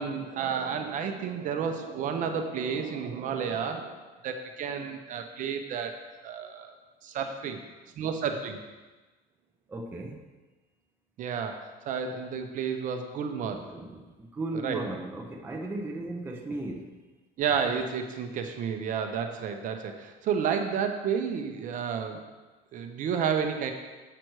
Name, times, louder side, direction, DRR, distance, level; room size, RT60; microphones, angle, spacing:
voice 1, 0.0-4.0 4.2-5.9 6.2-6.7 7.0-7.6 8.0-8.6 11.2-13.6 14.6-14.8 17.4-22.2 22.7-23.7, right 7 dB, 45° right, 5 dB, 0.8 m, -31 dB
voice 2, 9.7-10.2 13.5-17.0, right 2 dB, 10° right, 1 dB, 0.6 m, -36 dB
7.8 x 5.9 x 4.7 m, 1.2 s
cardioid pair, 160°, 18 cm